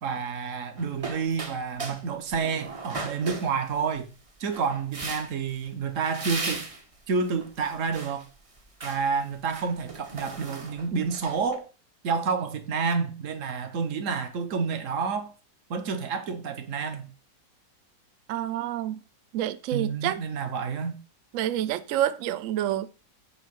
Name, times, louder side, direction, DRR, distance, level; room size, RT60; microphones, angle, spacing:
voice 1, 0.0-4.1 4.4-6.7 7.1-8.3 8.8-11.7 12.0-15.3 15.7-17.1 19.7-21.0, right 5 dB, 55° right, 0.9 m, -29 dB
sound 1, 0.8-2.0 2.3-4.0 4.5-5.5 6.0-6.8 7.3-8.2 8.6-9.0 9.4-11.6, right 3 dB, 35° right, 0.5 m, -37 dB
voice 2, 18.3-19.0 19.3-20.2 21.3-22.9, right 12 dB, 85° right, 0.7 m, -28 dB
8.1 x 2.7 x 6.1 m
omnidirectional pair, 2.0 m